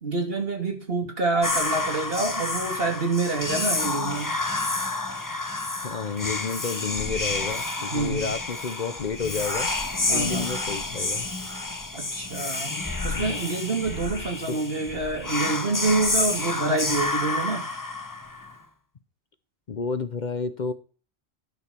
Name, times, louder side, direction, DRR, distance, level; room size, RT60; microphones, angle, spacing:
voice 1, 0.0-4.3 7.9-8.3 10.1-10.5 11.9-12.7 13.0-17.6, right 3 dB, 60° right, 3 dB, 2.6 m, -27 dB
Whispering, 1.4-18.5, left 2 dB, 20° left, 1.0 m, -29 dB
voice 2, 5.8-9.7 10.1-11.2 13.0-13.4 14.5-14.6 19.7-20.7, left 5 dB, 50° left, 12 dB, 0.8 m, -30 dB
12.0 x 4.8 x 6.8 m, 0.38 s
omnidirectional pair, 1.1 m